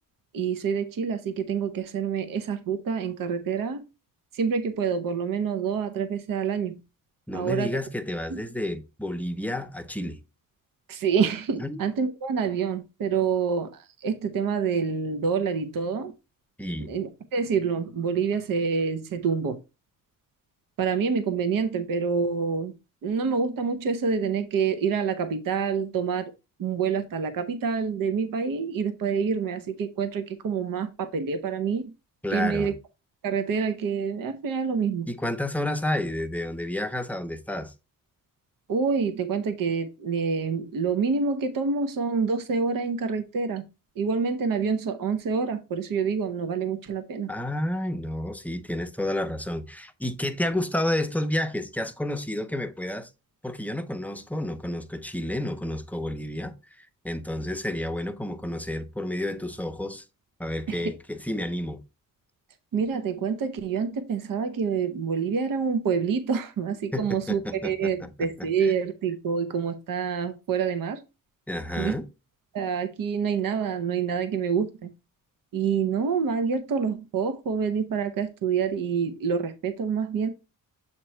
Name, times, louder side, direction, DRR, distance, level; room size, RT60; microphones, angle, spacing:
voice 1, 0.3-3.8 4.3-6.8 7.3-7.7 10.9-16.1 16.8-19.6 20.8-22.7 23.0-26.3 26.6-31.9 32.3-32.7 33.2-35.1 38.7-43.6 44.0-47.3 60.7-60.9 62.7-71.0 71.8-72.0 72.5-74.9 75.5-80.3, right 6 dB, 80° right, 0.8 m, -27 dB
voice 2, 7.3-10.2 11.6-11.8 16.6-16.9 32.2-32.7 35.1-37.7 47.3-53.1 53.4-60.0 60.4-61.8 66.9-68.5 71.5-72.1, left 1 dB, 5° left, 0.5 m, -30 dB
7.4 x 3.0 x 4.3 m
wide cardioid pair, 125°, 33 cm